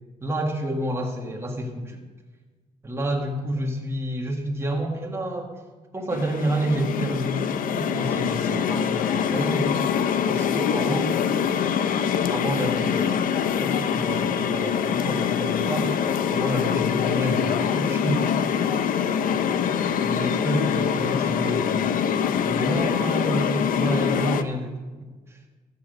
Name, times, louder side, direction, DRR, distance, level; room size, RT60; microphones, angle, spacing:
voice 1, 0.2-2.0 2.8-5.5 5.9-9.8 10.3-11.1 12.3-13.3 13.6-15.9 16.3-18.3 18.7-19.1 19.3-19.5 20.0-21.9 22.5-24.7 25.3-25.4, right 1 dB, 15° right, 0 dB, 1.7 m, -29 dB
sound 1, 6.1-24.4, left 8 dB, 65° left, 0.6 m, -24 dB
13.0 x 8.6 x 5.3 m, 1.3 s
cardioid pair, 130°, 15 cm